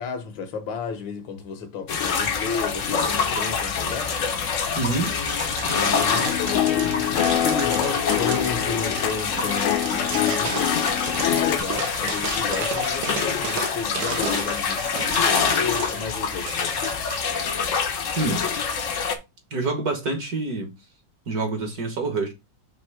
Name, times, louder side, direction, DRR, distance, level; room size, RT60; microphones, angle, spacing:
voice 1, 0.0-4.1 5.7-17.0, left 5 dB, 70° left, 1.7 m, -32 dB
sound 1, 1.9-19.1, left 6 dB, 55° left, 0.9 m, -26 dB
voice 2, 4.8-5.1 18.2-18.4 19.5-20.7 21.3-22.3, right 3 dB, 50° right, 1.7 m, -26 dB
sound 2, 5.0-17.5, right 10 dB, 70° right, 1.1 m, -35 dB
sound 3, 6.0-11.6, left 12 dB, 90° left, 1.5 m, -26 dB
5.5 x 3.5 x 4.8 m
omnidirectional pair, 2.2 m